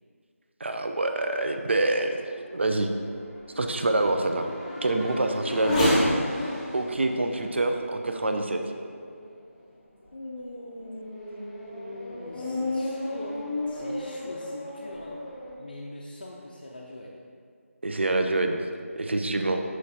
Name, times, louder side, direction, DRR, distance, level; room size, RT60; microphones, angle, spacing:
voice 1, 0.6-2.2 2.5-2.9 3.6-4.5 4.8-6.0 6.7-8.6 17.8-18.6 19.0-19.6, right 2 dB, 50° right, 5 dB, 0.6 m, -26 dB
Race car auto racing / Accelerating revving vroom, 1.9-9.4 10.0-10.1 10.7-15.5, left 1 dB, 5° left, 0.6 m, -33 dB
voice 2, 10.1-15.2 15.6-17.2, left 1 dB, 40° left, -4 dB, 0.6 m, -41 dB
13.0 x 4.6 x 2.8 m, 2.2 s
figure-of-eight pair, 170°, 8 cm